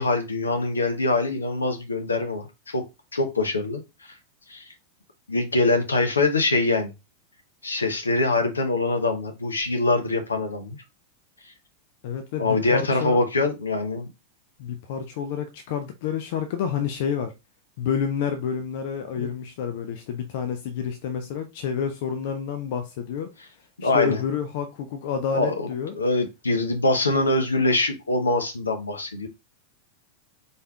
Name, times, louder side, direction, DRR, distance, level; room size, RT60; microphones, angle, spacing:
voice 1, 0.0-2.8 3.1-3.8 4.5-4.6 5.3-6.9 7.6-10.8 12.4-14.1 19.1-19.3 23.8-24.2 25.3-25.7 25.9-29.3, left 2 dB, 75° left, 0.8 m, -24 dB
voice 2, 12.0-13.2 14.6-17.3 17.8-23.3 23.8-26.0, left 7 dB, 50° left, 0.5 m, -29 dB
4.2 x 3.3 x 2.3 m
figure-of-eight pair, 90°, 0 cm